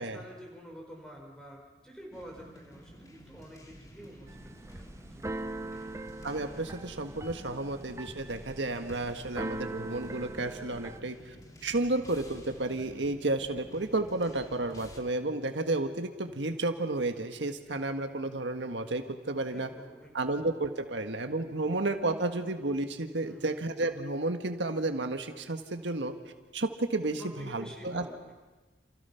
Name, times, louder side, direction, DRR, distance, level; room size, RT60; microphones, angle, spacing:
voice 1, 0.0-5.8 19.5-20.3 21.5-21.7 23.2-23.5 27.2-28.3, equal, 5° left, -1 dB, 5.2 m, -49 dB
sound 1, 2.1-15.0, equal, 20° left, 2.6 m, -52 dB
Keyboard (musical), 4.3-11.0, right 2 dB, 15° right, 0.7 m, -41 dB
voice 2, 6.2-11.2 11.6-19.7 20.1-26.1 26.5-28.0, right 2 dB, 85° right, 6 dB, 1.6 m, -32 dB
28.5 x 28.5 x 5.8 m, 1.2 s
head